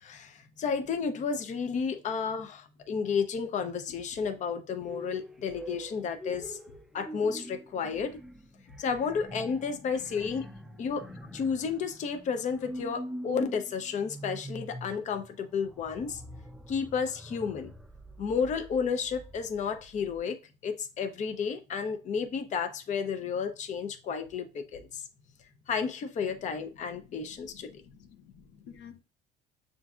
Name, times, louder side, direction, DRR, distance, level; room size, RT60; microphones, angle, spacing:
voice 1, 0.0-6.6 6.9-8.2 8.8-10.5 10.8-11.1 11.3-16.2 16.7-17.7 18.2-20.4 20.6-25.0 25.7-27.8, left 6 dB, 45° left, 0.6 m, -32 dB
sound 1, 4.8-20.2, equal, ahead, 0.3 m, -44 dB
voice 2, 26.4-29.0, left 8 dB, 85° left, 0.6 m, -53 dB
6.9 x 2.6 x 2.4 m
cardioid pair, 110°, 17 cm